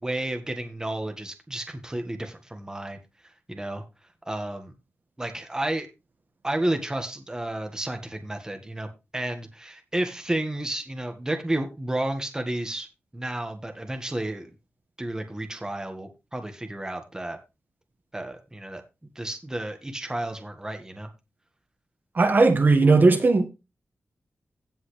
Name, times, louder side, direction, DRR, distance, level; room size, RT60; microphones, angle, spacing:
voice 1, 0.0-3.0 3.5-3.8 4.3-4.7 5.2-5.9 6.4-12.9 13.1-14.5 15.0-17.4 18.1-18.8 19.1-21.1, right 1 dB, 15° right, 1.6 m, -31 dB
voice 2, 22.1-23.5, right 3 dB, 45° right, 1.7 m, -17 dB
16.5 x 5.5 x 3.3 m
wide cardioid pair, 115°, 4 cm